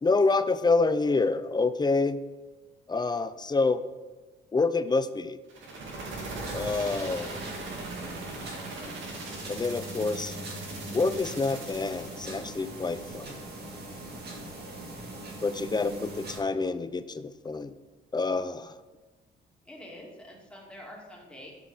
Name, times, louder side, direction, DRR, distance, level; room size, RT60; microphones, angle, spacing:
voice 1, 0.0-2.2 2.9-3.8 4.5-5.4 6.5-7.4 9.5-10.4 10.9-13.4 15.4-17.7 18.1-18.8, left 3 dB, 20° left, 12 dB, 0.5 m, -27 dB
sound 1, 5.5-12.3, right 2 dB, 75° right, 2.0 m, -40 dB
sound 2, 6.4-16.4, right 1 dB, 55° right, 1.9 m, -41 dB
voice 2, 19.6-21.5, left 1 dB, 5° left, -3 dB, 2.3 m, -46 dB
7.3 x 5.9 x 4.8 m, 1.2 s
cardioid pair, 90°, 20 cm